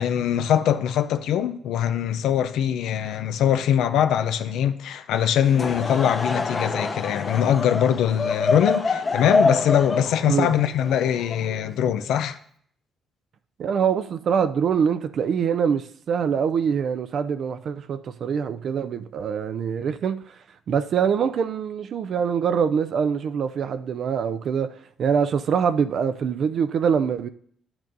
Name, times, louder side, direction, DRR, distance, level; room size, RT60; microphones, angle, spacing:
voice 1, 0.0-12.4, left 9 dB, 85° left, 0.4 m, -22 dB
Laughter / Crowd, 5.4-11.8, left 3 dB, 35° left, 0.9 m, -26 dB
voice 2, 13.6-20.3 20.7-27.3, right 7 dB, 60° right, 0.4 m, -24 dB
10.5 x 8.7 x 2.6 m
cardioid pair, 90°, 0 cm